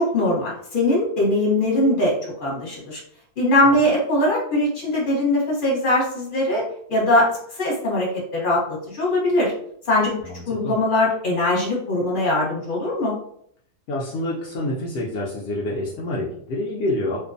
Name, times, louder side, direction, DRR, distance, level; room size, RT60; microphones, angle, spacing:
voice 1, 0.0-2.1 2.4-3.0 3.4-6.6 6.9-9.5 9.9-10.2 10.5-13.1, left 1 dB, 40° left, -4 dB, 1.0 m, -21 dB
voice 2, 10.2-10.7 13.9-17.2, left 1 dB, 70° left, -4 dB, 0.6 m, -27 dB
2.5 x 2.2 x 2.5 m, 0.66 s
omnidirectional pair, 1.6 m